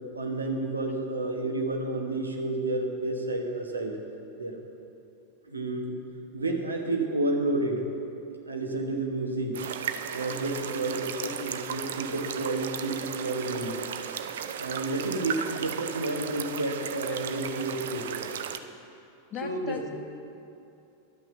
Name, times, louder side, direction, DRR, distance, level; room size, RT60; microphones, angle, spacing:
voice 1, 0.1-4.0 4.4-4.6 5.5-6.0 6.3-7.9 8.5-9.6 10.1-13.9 14.6-18.3 19.4-19.9, right 2 dB, 75° right, 2 dB, 1.2 m, -30 dB
sound 1, 9.5-18.6, right 8 dB, 60° right, 0.5 m, -35 dB
voice 2, 19.3-19.9, left 6 dB, 30° left, 4 dB, 0.9 m, -39 dB
11.0 x 6.0 x 7.0 m, 2.7 s
figure-of-eight pair, 90°, 0 cm